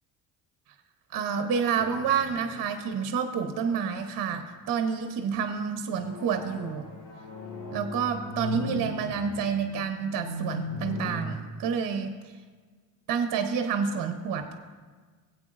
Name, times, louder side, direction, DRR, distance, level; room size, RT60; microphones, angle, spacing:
voice 1, 1.1-6.9 7.7-12.1 13.1-14.5, right 6 dB, 50° right, 6 dB, 1.0 m, -29 dB
sound 1, 1.8-3.5 4.1-4.6 5.3-11.2, left 2 dB, 70° left, 2.8 m, -38 dB
16.5 x 8.5 x 2.5 m, 1.5 s
supercardioid pair, 75°, 43 cm